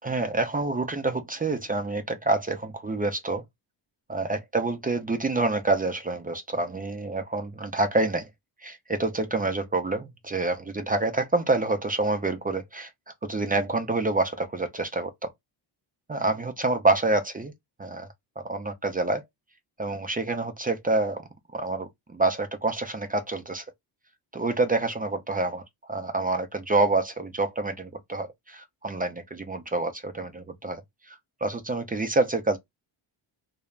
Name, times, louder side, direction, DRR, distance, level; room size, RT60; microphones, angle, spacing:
voice 1, 0.0-3.4 4.1-8.3 8.6-12.9 13.2-15.3 16.1-17.5 17.8-18.1 18.4-19.2 19.8-21.2 21.5-23.6 24.3-25.6 25.9-30.8 31.1-32.6, right 2 dB, 20° right, 0.3 m, -27 dB
3.1 x 2.0 x 2.2 m
cardioid pair, 120°, 48 cm